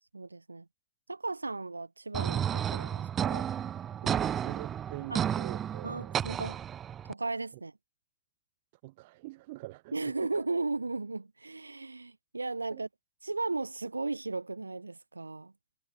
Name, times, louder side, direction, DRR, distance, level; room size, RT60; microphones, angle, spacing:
voice 1, 0.1-0.7 1.1-3.5 5.1-5.2 5.8-6.6 7.0-7.7 9.9-12.9 13.2-15.5, right 3 dB, 80° right, 2.1 m, -35 dB
sound 1, 2.1-7.1, right 9 dB, 25° right, 0.4 m, -32 dB
voice 2, 4.0-6.2 8.8-10.4 12.7-12.8, right 20 dB, 50° right, 3.0 m, -45 dB
figure-of-eight pair, 90°, 0 cm